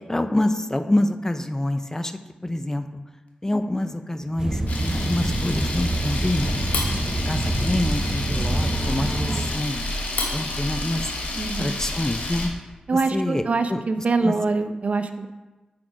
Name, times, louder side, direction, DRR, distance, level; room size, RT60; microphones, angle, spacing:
voice 1, 0.0-2.8 3.4-6.6 7.2-10.0 10.3-11.0 11.6-12.5 12.9-13.4 13.7-14.3, left 1 dB, 20° left, 8 dB, 0.5 m, -26 dB
sound 1, 4.2-6.9 7.3-10.2, left 2 dB, 55° left, 1.5 m, -38 dB
sound 2, 4.4-9.5, right 1 dB, 25° right, 0.8 m, -26 dB
Camera, 4.7-12.5, left 2 dB, 85° left, 1.2 m, -29 dB
voice 2, 11.4-11.8 12.9-15.3, right 3 dB, 55° right, 9 dB, 0.6 m, -24 dB
6.1 x 6.1 x 5.0 m, 1.2 s
cardioid pair, 45°, 3 cm